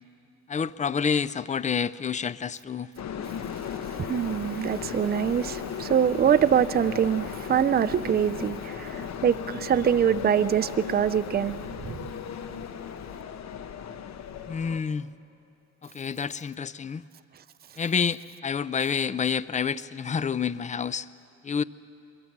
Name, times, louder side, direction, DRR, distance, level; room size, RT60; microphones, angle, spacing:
voice 1, 0.5-2.9 14.5-15.1 15.8-17.0 17.8-21.1 21.4-21.6, left 6 dB, 25° left, 0.4 m, -28 dB
sound 1, 3.0-14.8, left 7 dB, 65° left, 1.0 m, -36 dB
voice 2, 4.0-11.6, right 8 dB, 30° right, 0.5 m, -24 dB
23.0 x 21.0 x 6.0 m
cardioid pair, 90°, 30 cm